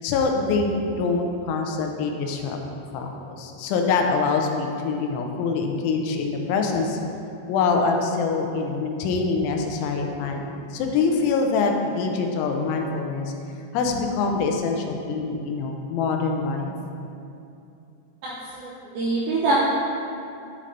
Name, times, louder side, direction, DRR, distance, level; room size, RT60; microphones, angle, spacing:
voice 1, 0.0-2.6 2.9-7.0 7.5-13.3 13.7-16.7, left 4 dB, 90° left, 2 dB, 3.1 m, -24 dB
voice 2, 18.2-19.5, right 3 dB, 90° right, -7 dB, 2.1 m, -25 dB
10.5 x 6.5 x 2.6 m, 2.6 s
omnidirectional pair, 5.4 m